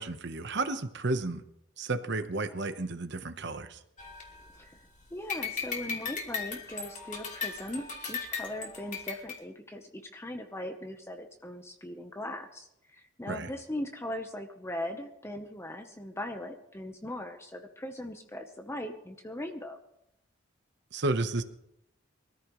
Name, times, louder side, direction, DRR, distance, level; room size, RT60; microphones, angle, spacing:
voice 1, 0.0-1.4 1.8-3.8 13.3-13.5 20.9-21.4, right 2 dB, 65° right, 10 dB, 1.1 m, -32 dB
sound 1, 4.0-4.9 5.3-9.4, left 5 dB, 40° left, 2.5 m, -37 dB
voice 2, 5.1-19.8, left 1 dB, 15° left, 5 dB, 0.9 m, -39 dB
23.5 x 14.0 x 3.2 m, 0.80 s
head